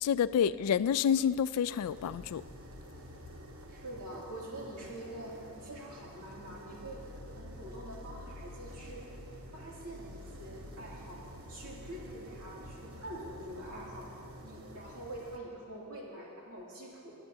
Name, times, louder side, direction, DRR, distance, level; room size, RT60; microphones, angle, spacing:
voice 1, 0.0-2.4, left 8 dB, 80° left, 16 dB, 0.3 m, -28 dB
sound 1, 1.8-15.4, equal, 65° right, 1.0 m, -48 dB
voice 2, 3.7-7.0 7.3-9.0 9.5-11.2 11.5-14.1 14.4-17.1, right 1 dB, 85° right, -5 dB, 2.6 m, -45 dB
25.0 x 8.7 x 2.8 m, 2.4 s
head